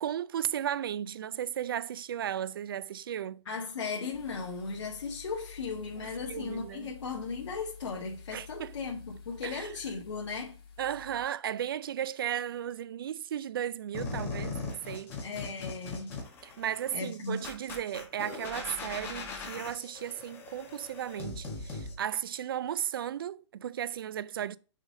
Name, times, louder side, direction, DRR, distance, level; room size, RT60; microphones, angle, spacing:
voice 1, 0.0-3.4 6.0-6.9 8.3-8.7 9.4-9.8 10.8-15.2 16.4-24.6, right 10 dB, 50° right, 0.4 m, -35 dB
voice 2, 3.4-10.6 15.2-16.1 16.9-17.4, left 4 dB, 80° left, 1.7 m, -37 dB
sound 1, 4.1-11.3, left 6 dB, 50° left, 2.6 m, -50 dB
sound 2, 13.9-21.9, left 3 dB, 15° left, 1.4 m, -40 dB
6.3 x 3.9 x 5.1 m
hypercardioid pair, 170°, 15 cm